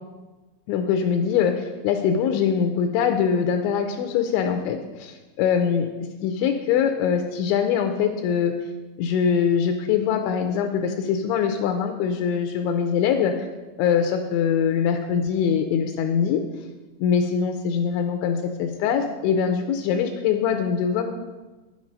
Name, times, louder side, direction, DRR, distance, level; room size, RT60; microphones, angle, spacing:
voice 1, 0.7-5.1 5.4-5.9 6.2-8.5 9.0-13.5 13.8-16.4 17.0-21.1, left 7 dB, 80° left, 6 dB, 2.8 m, -23 dB
9.9 x 8.7 x 5.2 m, 1.2 s
omnidirectional pair, 5.6 m